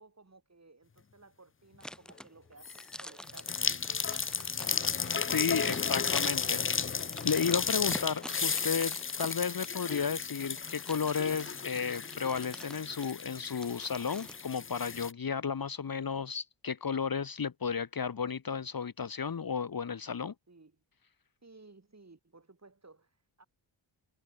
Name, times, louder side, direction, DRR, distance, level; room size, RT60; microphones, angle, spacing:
voice 1, 0.0-4.8 20.5-20.8 21.4-23.5, right 3 dB, 35° right, 4.5 m, -57 dB
sound 1, 1.8-14.4, equal, ahead, 1.7 m, -48 dB
sound 2, 2.6-2.9 3.3-15.1, left 6 dB, 25° left, 0.6 m, -34 dB
voice 2, 5.3-20.3, left 6 dB, 45° left, 1.3 m, -33 dB
cardioid pair, 45°, 47 cm